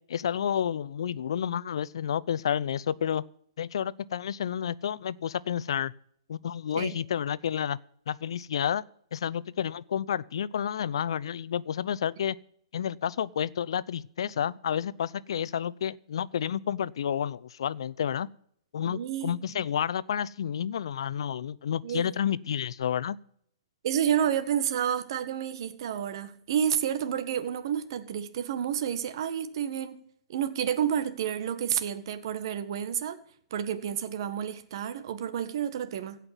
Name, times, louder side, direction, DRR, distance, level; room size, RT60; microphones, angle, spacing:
voice 1, 0.1-3.2 3.6-5.9 6.3-7.8 8.1-8.8 9.1-12.4 12.7-18.3 18.7-23.2, left 9 dB, 70° left, 0.6 m, -30 dB
voice 2, 18.8-19.7 21.8-22.1 23.8-30.0 30.3-33.2 33.5-36.2, right 9 dB, 55° right, 1.7 m, -30 dB
16.5 x 5.9 x 9.0 m
hypercardioid pair, 135°, 3 cm